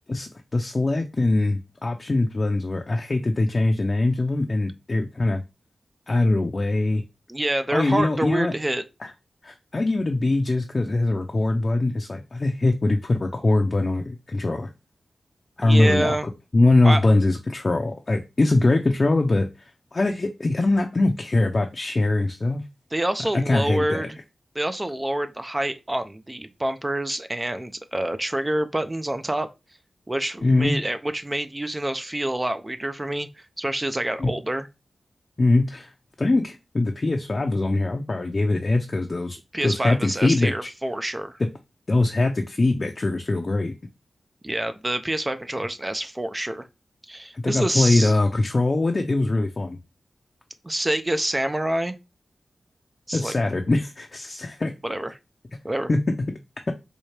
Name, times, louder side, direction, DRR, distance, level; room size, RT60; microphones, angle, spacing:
voice 1, 0.1-5.4 6.1-7.0 7.7-8.5 9.0-9.1 9.4-14.7 15.6-16.2 16.5-19.5 19.9-22.6 23.3-24.1 30.4-30.8 34.2-34.3 35.4-35.9 36.2-39.4 39.6-40.7 41.4-41.5 41.9-43.7 47.4-49.8 53.1-54.7 55.9-56.0, left 2 dB, 50° left, 0.5 m, -22 dB
voice 2, 7.3-8.8 15.6-16.3 16.8-17.1 22.9-24.2 24.6-29.5 30.1-33.3 33.6-34.7 39.5-41.4 44.4-46.7 47.1-48.2 50.6-52.0 53.1-53.3 54.8-55.2 55.6-55.9, right 1 dB, 25° right, 0.5 m, -27 dB
4.3 x 2.3 x 3.2 m
cardioid pair, 45°, 0 cm